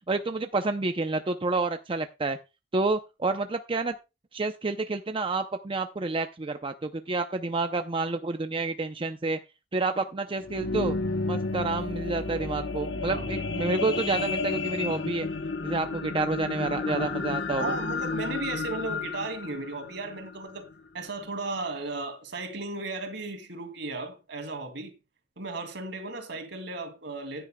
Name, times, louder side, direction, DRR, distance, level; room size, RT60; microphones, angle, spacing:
voice 1, 0.1-2.4 2.7-3.9 4.3-9.4 9.7-11.0 11.3-15.3 15.6-17.7, right 3 dB, 30° right, 0.6 m, -29 dB
sound 1, 10.2-20.7 21.3-21.4, left 3 dB, 75° left, 0.9 m, -32 dB
voice 2, 16.8-20.7 20.9-24.9 25.4-27.5, right 3 dB, 70° right, 2.6 m, -35 dB
15.0 x 9.8 x 2.3 m
head